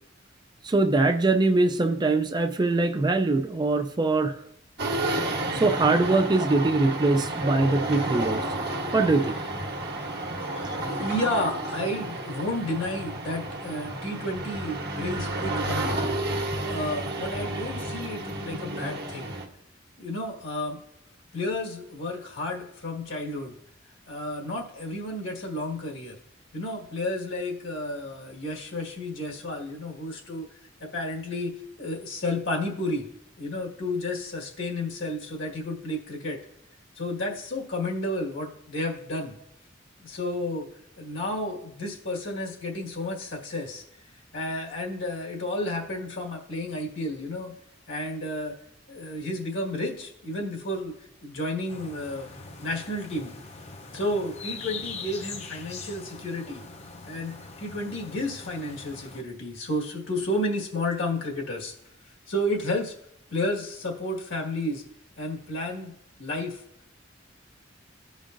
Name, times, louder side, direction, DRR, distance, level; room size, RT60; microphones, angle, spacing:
voice 1, 0.6-4.4 5.5-8.4 8.9-9.4 10.6-10.8, right 3 dB, 20° right, 6 dB, 0.4 m, -23 dB
sound 1, 4.8-19.5, right 2 dB, 60° right, 1.2 m, -31 dB
voice 2, 10.4-16.0 16.6-19.3 20.0-20.8 21.3-23.6 24.1-26.2 26.5-30.5 30.8-33.0 33.4-36.4 37.0-39.3 40.0-40.7 41.0-43.8 44.3-47.5 47.9-48.5 48.9-50.9 51.2-52.3 52.6-53.3 53.9-56.6 57.1-61.7 62.3-62.9 63.3-64.8 65.2-65.9 66.2-66.6, left 1 dB, 75° left, -1 dB, 1.8 m, -31 dB
sound 2, 51.7-59.2, left 4 dB, 35° left, 0.7 m, -42 dB
14.5 x 5.1 x 2.6 m, 0.74 s
head